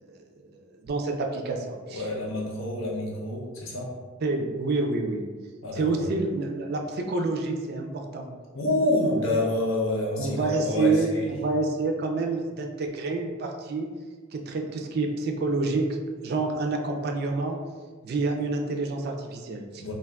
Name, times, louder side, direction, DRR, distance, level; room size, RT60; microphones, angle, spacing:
voice 1, 0.0-2.0 4.2-5.2 5.7-8.3 10.2-13.9 14.3-15.9 16.2-17.6 18.0-19.8, right 3 dB, 50° right, 3 dB, 0.3 m, -28 dB
voice 2, 1.9-3.9 5.6-6.1 8.5-11.3 19.8-19.9, left 1 dB, 75° left, -2 dB, 0.7 m, -27 dB
2.5 x 2.2 x 3.5 m, 1.4 s
head